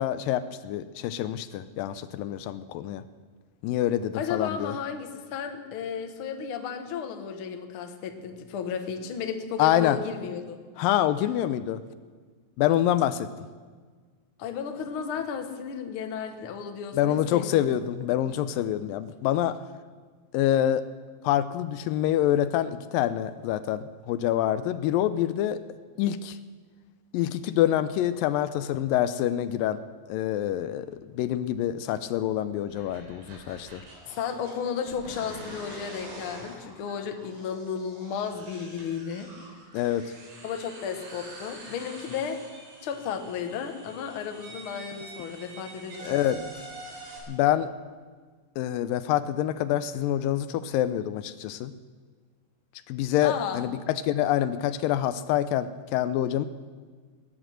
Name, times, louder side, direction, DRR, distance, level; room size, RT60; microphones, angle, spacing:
voice 1, 0.0-3.0 3.6-4.7 9.6-10.0 10.8-11.8 12.6-13.3 16.9-19.6 20.3-20.8 21.2-25.6 26.0-26.4 27.1-29.8 30.1-33.8 39.7-40.1 46.0-46.4 47.3-47.7 48.6-51.7 52.9-56.5, left 12 dB, 80° left, 13 dB, 2.3 m, -26 dB
voice 2, 4.1-10.6 14.4-17.9 18.3-18.4 34.1-39.3 40.4-42.4 42.8-46.5 53.2-53.6, left 7 dB, 60° left, 6 dB, 1.5 m, -34 dB
sound 1, 32.7-47.2, right 2 dB, 85° right, 5.1 m, -46 dB
18.5 x 9.9 x 7.7 m, 1.5 s
omnidirectional pair, 4.0 m